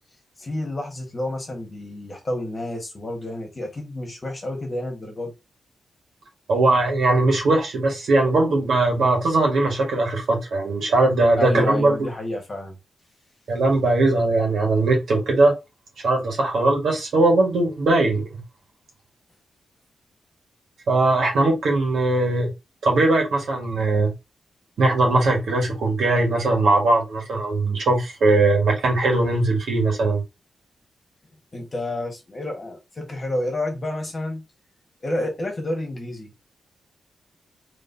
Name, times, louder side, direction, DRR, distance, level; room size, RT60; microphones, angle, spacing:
voice 1, 0.4-5.3 11.4-12.8 31.5-34.4 35.0-36.3, left 1 dB, 30° left, 1.4 m, -29 dB
voice 2, 6.5-11.9 13.5-15.5 16.0-18.4 20.9-22.5 22.8-24.1 24.8-30.2, right 2 dB, 80° right, 1.6 m, -20 dB
4.1 x 3.1 x 2.7 m
wide cardioid pair, 115°, 0 cm